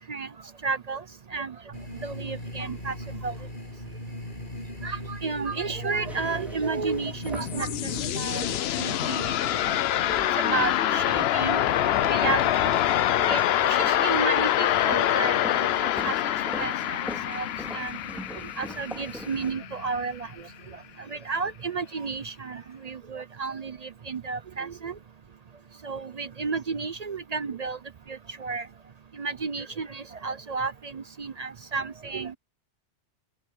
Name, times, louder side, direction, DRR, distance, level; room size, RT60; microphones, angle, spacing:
voice 1, 0.6-1.0 1.3-1.5 2.0-2.9 3.2-3.4 4.8-8.5 8.8-9.5 10.4-11.6 12.0-16.1 16.6-17.5 17.7-18.0 18.6-20.3 21.1-24.9 25.8-27.8 28.1-28.7 29.2-32.4, right 4 dB, 45° right, 0.6 m, -32 dB
sound 1, 1.7-8.6, left 1 dB, 45° left, 7.8 m, -38 dB
sound 2, 6.1-19.5, equal, ahead, 3.3 m, -43 dB
sound 3, 7.0-19.9, left 12 dB, 65° left, 0.8 m, -25 dB
open air
omnidirectional pair, 1.2 m